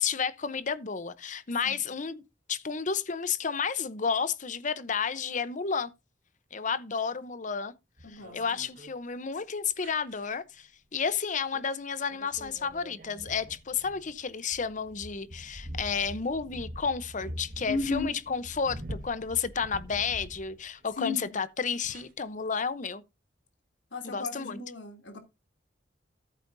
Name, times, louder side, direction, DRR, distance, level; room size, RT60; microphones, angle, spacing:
voice 1, 0.0-2.2 2.5-5.9 6.5-7.7 8.1-23.0 24.0-24.6, left 6 dB, 45° left, 0.7 m, -31 dB
voice 2, 8.0-8.4 17.6-18.1 21.0-21.3 23.9-25.2, left 3 dB, 85° left, 2.7 m, -34 dB
sound 1, 8.0-8.9 9.8-10.3 11.5-11.8 12.1-20.9 21.9-22.0, equal, 50° right, 1.7 m, -44 dB
13.5 x 8.3 x 2.6 m
head